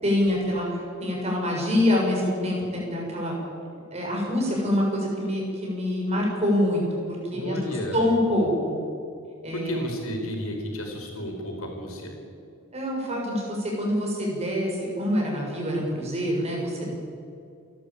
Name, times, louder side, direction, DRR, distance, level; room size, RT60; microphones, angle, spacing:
voice 1, 0.0-3.4 3.9-7.6 7.9-8.8 9.4-9.9 12.7-16.9, left 1 dB, 30° right, -2 dB, 6.8 m, -25 dB
voice 2, 7.3-8.1 9.5-12.1, equal, 90° left, 2 dB, 5.1 m, -32 dB
28.5 x 12.5 x 8.9 m, 2.5 s
head